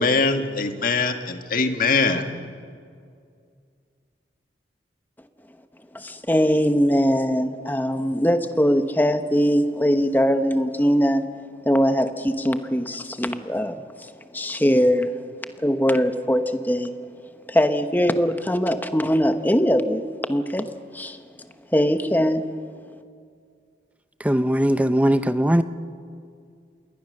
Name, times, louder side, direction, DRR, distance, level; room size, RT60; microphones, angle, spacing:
voice 1, 0.0-2.3, left 4 dB, 50° left, 6 dB, 1.5 m, -22 dB
voice 2, 5.9-11.2 11.6-15.1 15.6-16.9 17.5-20.0 20.3-20.7 20.9-21.2 21.7-22.4, equal, 10° left, 9 dB, 1.0 m, -21 dB
voice 3, 24.2-25.6, equal, 10° right, 11 dB, 0.6 m, -19 dB
27.5 x 21.5 x 6.5 m, 2.3 s
head